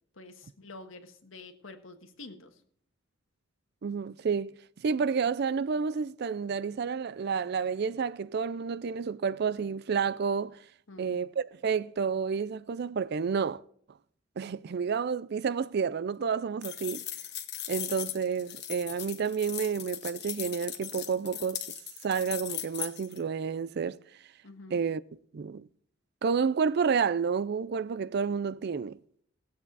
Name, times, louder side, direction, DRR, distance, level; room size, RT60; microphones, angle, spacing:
voice 1, 0.2-2.5 10.9-11.2 24.4-24.8, left 2 dB, 90° left, 1.5 m, -48 dB
voice 2, 3.8-4.5 4.8-10.6 11.0-13.6 14.4-17.0 17.7-21.6 22.0-24.0 24.7-25.0 25.3-25.7 26.2-29.0, right 6 dB, 55° right, 0.4 m, -30 dB
sound 1, 16.6-23.2, left 11 dB, 60° left, 1.1 m, -38 dB
18.5 x 8.5 x 4.0 m
head